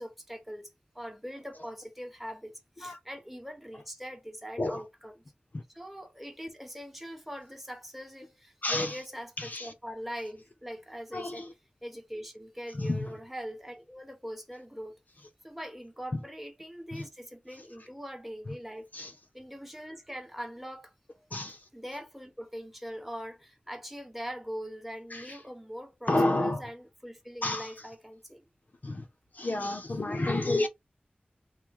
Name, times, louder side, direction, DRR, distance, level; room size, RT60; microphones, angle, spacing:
voice 1, 0.0-5.2 5.7-11.5 11.8-15.0 15.4-18.9 19.3-20.9 21.7-28.4, equal, 5° right, 1.0 m, -42 dB
voice 2, 8.6-8.9 9.4-9.7 11.1-11.5 12.7-13.1 16.1-16.2 16.9-17.0 18.9-19.1 21.3-21.6 25.1-25.4 26.1-26.6 27.4-27.7 28.8-29.1 29.3-30.7, left 2 dB, 50° left, 0.6 m, -30 dB
3.0 x 2.1 x 3.7 m
wide cardioid pair, 55°, 4 cm